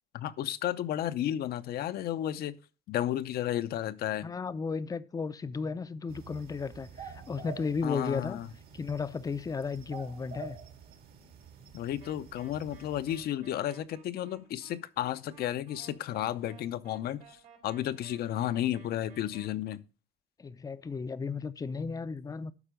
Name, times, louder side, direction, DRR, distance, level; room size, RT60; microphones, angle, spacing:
voice 1, 0.1-2.5 2.9-4.3 7.8-8.5 11.7-17.2 17.6-19.8, left 12 dB, 65° left, 0.7 m, -32 dB
voice 2, 4.2-8.4 8.7-10.6 20.4-22.5, left 5 dB, 20° left, 0.5 m, -34 dB
sound 1, 6.1-13.2, right 6 dB, 65° right, 1.8 m, -48 dB
sound 2, 12.0-19.5, right 6 dB, 90° right, 3.7 m, -57 dB
12.0 x 4.6 x 5.1 m
cardioid pair, 110°, 17 cm